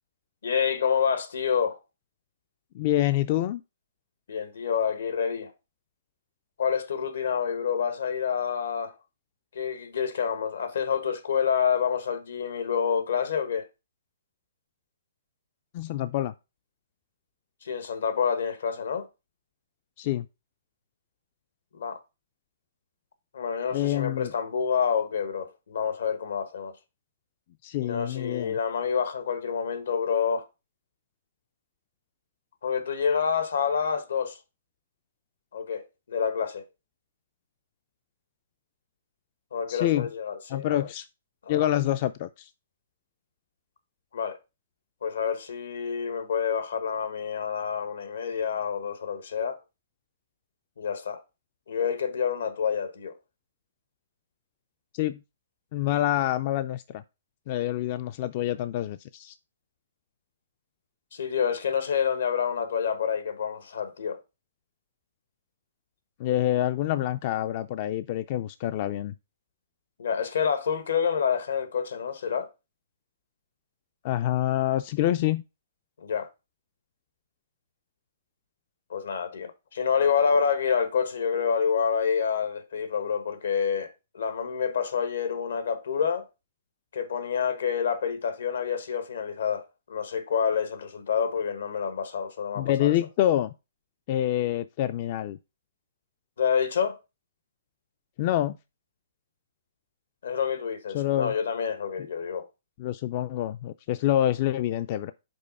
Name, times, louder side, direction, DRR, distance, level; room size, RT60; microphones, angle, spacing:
voice 1, 0.4-1.8 4.3-5.5 6.6-8.9 9.5-13.7 17.6-19.1 21.7-22.0 23.3-26.7 27.8-30.4 32.6-34.4 35.5-36.6 39.5-40.9 41.4-41.6 44.1-44.4 45.0-49.6 50.8-51.2 51.7-53.2 61.1-64.2 70.0-72.5 76.0-76.3 78.9-86.3 86.9-93.0 96.4-97.0 100.2-102.5, left 7 dB, 80° left, 1.3 m, -28 dB
voice 2, 2.7-3.6 15.7-16.3 20.0-20.3 23.7-24.3 27.6-28.6 39.7-40.1 40.5-41.1 41.5-42.5 54.9-55.2 55.7-57.0 57.5-59.3 66.2-69.1 74.0-75.4 92.6-93.5 94.1-95.4 98.2-98.6 100.9-101.3 102.8-105.1, left 13 dB, 40° left, 0.3 m, -26 dB
5.3 x 4.1 x 5.4 m
hypercardioid pair, 155°, 0 cm